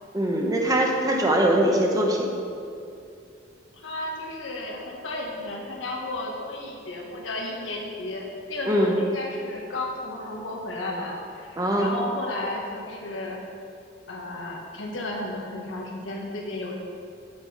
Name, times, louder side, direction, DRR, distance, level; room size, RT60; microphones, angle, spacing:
voice 1, 0.1-2.3 8.7-8.9 11.6-11.9, right 1 dB, 20° right, 0 dB, 0.9 m, -22 dB
voice 2, 3.7-13.4 14.1-16.8, left 1 dB, 90° left, -2 dB, 1.4 m, -33 dB
8.0 x 6.2 x 4.9 m, 2.5 s
head